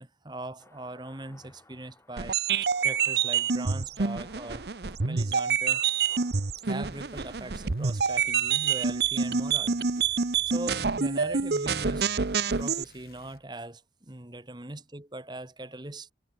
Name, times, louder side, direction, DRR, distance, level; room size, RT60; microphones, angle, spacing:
voice 1, 0.0-2.4 2.8-4.7 5.0-5.8 6.6-9.8 10.1-12.1 12.6-16.1, right 1 dB, 25° right, 1.3 m, -40 dB
sound 1, 0.6-8.8, left 2 dB, 15° left, 5.4 m, -59 dB
sound 2, 2.2-12.8, right 6 dB, 65° right, 0.8 m, -27 dB
sound 3, 6.8-13.5, left 1 dB, 55° left, 4.4 m, -56 dB
head